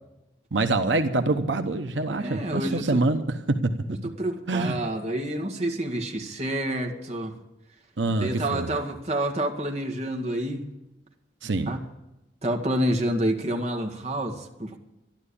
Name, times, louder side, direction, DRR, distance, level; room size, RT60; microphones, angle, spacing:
voice 1, 0.5-3.7 4.5-4.8 8.0-8.7 11.4-11.7, right 2 dB, 90° right, 7 dB, 1.0 m, -25 dB
voice 2, 2.1-3.1 4.0-7.4 8.2-10.7 11.7-11.8 12.4-14.8, right 1 dB, 35° right, 3 dB, 1.9 m, -28 dB
12.5 x 12.0 x 8.6 m, 0.94 s
head